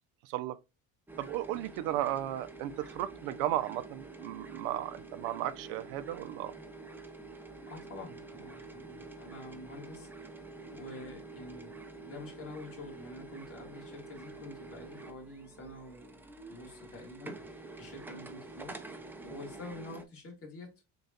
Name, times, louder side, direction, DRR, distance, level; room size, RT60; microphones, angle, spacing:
voice 1, 0.2-0.6 1.2-6.5, right 13 dB, 85° right, 0.6 m, -35 dB
sound 1, 1.1-20.0, right 3 dB, 5° right, 0.3 m, -48 dB
voice 2, 7.7-18.8 19.2-20.8, left 2 dB, 35° left, 1.8 m, -47 dB
6.6 x 2.4 x 2.7 m
cardioid pair, 120°, 39 cm